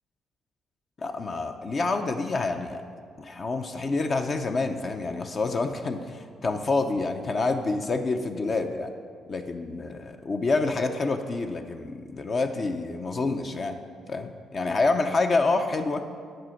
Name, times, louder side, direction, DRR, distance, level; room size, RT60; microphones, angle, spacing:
voice 1, 1.0-2.8 3.2-8.9 9.3-13.8 14.1-16.0, left 3 dB, 45° left, 5 dB, 0.6 m, -27 dB
10.5 x 4.2 x 7.7 m, 2.1 s
cardioid pair, 90°, 0 cm